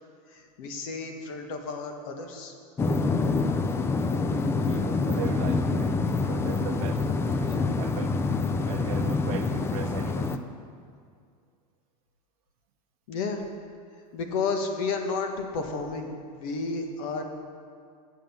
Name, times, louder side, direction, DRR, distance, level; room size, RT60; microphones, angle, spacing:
voice 1, 0.3-2.5 13.1-13.4 14.1-17.2, left 4 dB, 60° left, 4 dB, 1.4 m, -32 dB
sound 1, 2.8-10.4, left 3 dB, 15° left, 0.4 m, -26 dB
voice 2, 4.7-6.0 6.3-8.2 8.6-10.3, right 11 dB, 70° right, 10 dB, 0.6 m, -39 dB
8.8 x 6.3 x 7.2 m, 2.2 s
supercardioid pair, 135°, 19 cm